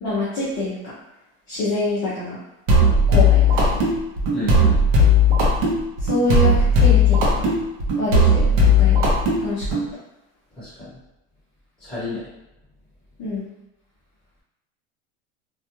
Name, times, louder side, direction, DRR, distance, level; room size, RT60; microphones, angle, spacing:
voice 1, 0.0-1.0 1.5-2.4 3.1-3.8 6.0-7.5 8.0-9.1 9.4-9.8 13.2-13.5, left 2 dB, 30° left, -9 dB, 0.5 m, -26 dB
sound 1, 2.7-9.8, left 2 dB, 50° right, 0.6 m, -16 dB
voice 2, 4.3-4.7 10.6-10.9 11.8-12.2, left 2 dB, ahead, -13 dB, 1.0 m, -30 dB
2.3 x 2.2 x 2.9 m, 0.95 s
supercardioid pair, 175°, 33 cm